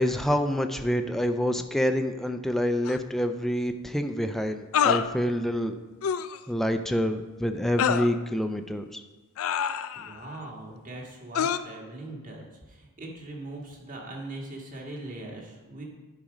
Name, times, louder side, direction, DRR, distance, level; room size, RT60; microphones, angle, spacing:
voice 1, 0.0-5.8 6.5-9.0, equal, ahead, 6 dB, 0.3 m, -27 dB
sound 1, 2.8-3.0 4.7-5.1 6.0-6.4 7.8-8.1 9.4-10.2 11.3-11.6, left 8 dB, 65° left, 0.4 m, -25 dB
voice 2, 9.9-15.8, right 2 dB, 40° right, -1 dB, 1.7 m, -41 dB
10.5 x 4.9 x 5.1 m, 1.3 s
head